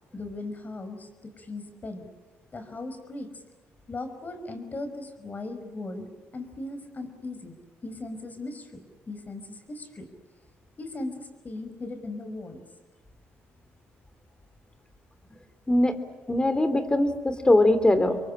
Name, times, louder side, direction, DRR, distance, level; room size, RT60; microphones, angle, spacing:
voice 1, 0.1-2.1 2.5-3.3 3.9-6.1 6.3-7.6 7.8-10.1 10.8-12.6, left 2 dB, 35° left, 9 dB, 5.4 m, -38 dB
voice 2, 15.7-16.0 16.3-18.2, left 1 dB, 15° left, 11 dB, 3.2 m, -21 dB
28.0 x 23.0 x 8.9 m, 1.2 s
cardioid pair, 80°, 5 cm